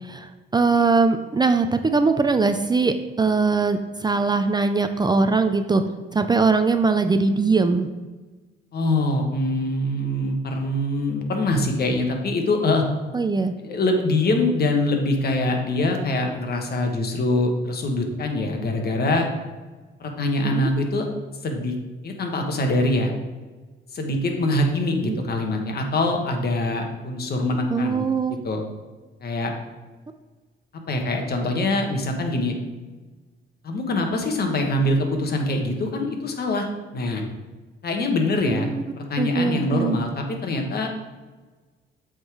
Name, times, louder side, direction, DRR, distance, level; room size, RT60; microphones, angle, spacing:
voice 1, 0.0-5.8 6.1-7.9 13.1-13.5 20.4-20.7 25.0-25.2 27.7-28.4 38.4-38.8 39.2-40.0, right 4 dB, 20° right, 8 dB, 0.4 m, -21 dB
voice 2, 8.7-12.8 13.6-19.3 20.0-21.0 21.4-21.7 22.0-23.1 23.9-28.0 28.4-28.6 29.2-29.5 30.9-32.5 33.6-36.7 36.9-37.2 37.8-38.7 39.0-40.9, left 2 dB, 50° left, 3 dB, 1.3 m, -24 dB
7.7 x 3.8 x 4.7 m, 1.3 s
cardioid pair, 90°, 20 cm